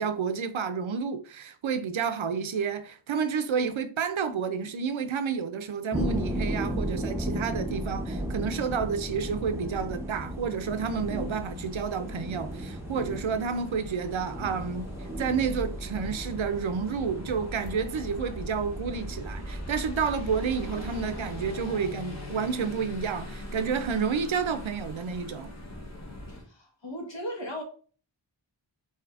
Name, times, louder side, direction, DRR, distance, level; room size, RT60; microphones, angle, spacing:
voice 1, 0.0-14.9 15.2-25.5, right 6 dB, 90° right, 0.5 m, -30 dB
sound 1, 5.9-22.6, right 1 dB, 5° right, 0.6 m, -36 dB
sound 2, 10.7-26.5, left 1 dB, 35° left, 1.0 m, -41 dB
voice 2, 26.3-27.6, equal, 75° left, 1.3 m, -37 dB
4.7 x 2.8 x 2.4 m
wide cardioid pair, 45°, 46 cm